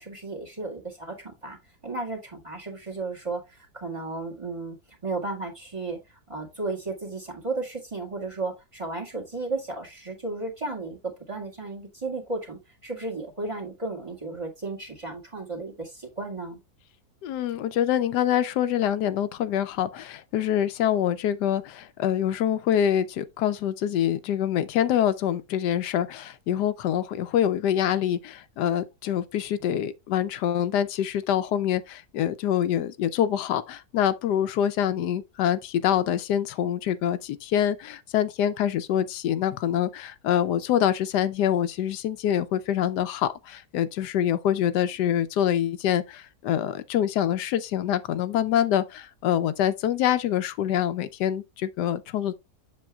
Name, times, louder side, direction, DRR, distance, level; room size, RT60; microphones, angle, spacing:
voice 1, 0.0-1.6 1.8-6.0 6.3-11.0 11.3-16.6, right 3 dB, 20° right, 1.9 m, -34 dB
voice 2, 17.2-52.3, left 10 dB, 90° left, 1.2 m, -25 dB
7.5 x 7.0 x 2.3 m
omnidirectional pair, 1.7 m